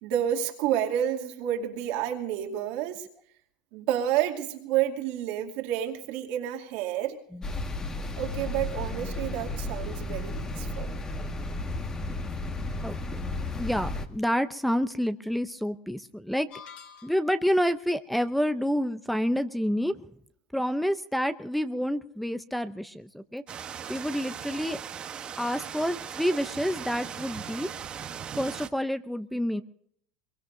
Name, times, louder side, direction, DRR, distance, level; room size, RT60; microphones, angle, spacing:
voice 1, 0.0-3.1 3.7-7.2 8.2-10.9, right 11 dB, 65° right, 3 dB, 2.5 m, -29 dB
sound 1, 7.4-14.1, left 2 dB, 25° left, 1.7 m, -33 dB
voice 2, 12.8-13.2 13.6-16.5 17.0-19.9 20.5-23.4 23.9-24.8 25.4-27.7 28.4-29.6, equal, ahead, 11 dB, 0.6 m, -28 dB
sound 2, 16.5-17.5, left 6 dB, 50° left, 3.2 m, -47 dB
sound 3, 23.5-28.7, right 8 dB, 35° right, 1.1 m, -39 dB
22.5 x 22.5 x 2.7 m, 0.68 s
supercardioid pair, 105°, 3 cm